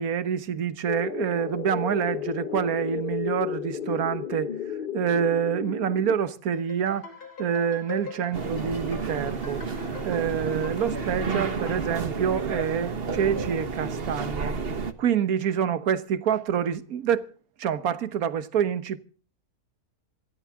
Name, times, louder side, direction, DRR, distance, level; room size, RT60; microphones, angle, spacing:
voice 1, 0.0-4.5 4.9-7.1 7.4-9.6 10.0-14.6 15.0-17.3 17.6-19.0, right 8 dB, 70° right, 1.6 m, -27 dB
sound 1, 0.9-6.2, left 8 dB, 45° left, 0.8 m, -33 dB
sound 2, 6.5-12.0, left 5 dB, 80° left, 3.2 m, -42 dB
sound 3, 8.3-14.9, right 4 dB, 40° right, 1.4 m, -31 dB
26.0 x 13.0 x 3.7 m
omnidirectional pair, 1.6 m